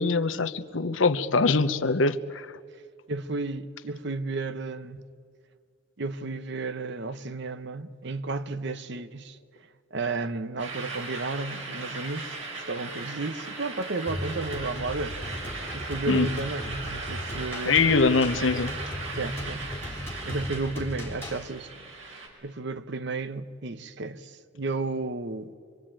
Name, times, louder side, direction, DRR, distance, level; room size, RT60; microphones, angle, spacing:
voice 1, 0.0-2.5 16.1-16.3 17.7-18.7, left 4 dB, 80° left, 0.9 m, -23 dB
voice 2, 3.1-5.0 6.0-9.4 9.9-15.2 15.7-17.8 19.2-21.8 22.4-25.6, right 3 dB, 60° right, 0.9 m, -33 dB
sound 1, 10.6-22.3, right 3 dB, 90° right, 5.2 m, -38 dB
sound 2, 14.1-21.5, left 1 dB, 15° left, 3.5 m, -37 dB
25.5 x 23.5 x 8.9 m
head